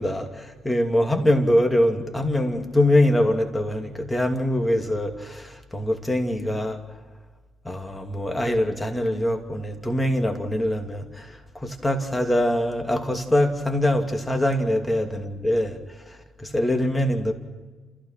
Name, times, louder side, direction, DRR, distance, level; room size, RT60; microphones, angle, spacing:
voice 1, 0.0-6.8 7.6-17.3, left 1 dB, 10° left, 4 dB, 2.7 m, -23 dB
29.0 x 16.0 x 5.9 m, 1.3 s
cardioid pair, 90°, 0 cm